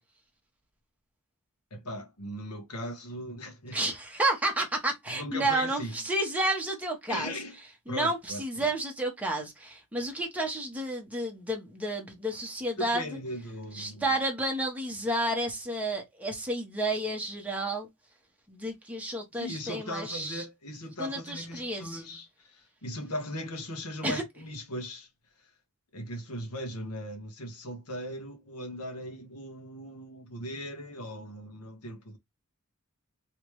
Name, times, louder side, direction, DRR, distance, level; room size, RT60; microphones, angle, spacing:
voice 1, 1.7-3.8 5.1-5.9 7.1-7.6 7.9-8.7 12.8-14.1 19.4-25.1 25.4-25.5 25.9-32.2, equal, 80° left, 1.3 m, -38 dB
voice 2, 3.7-7.3 7.9-13.0 13.7-17.9 18.5-20.4 21.0-22.0 24.0-24.2, right 1 dB, 5° right, 1.2 m, -31 dB
3.3 x 3.2 x 3.1 m
head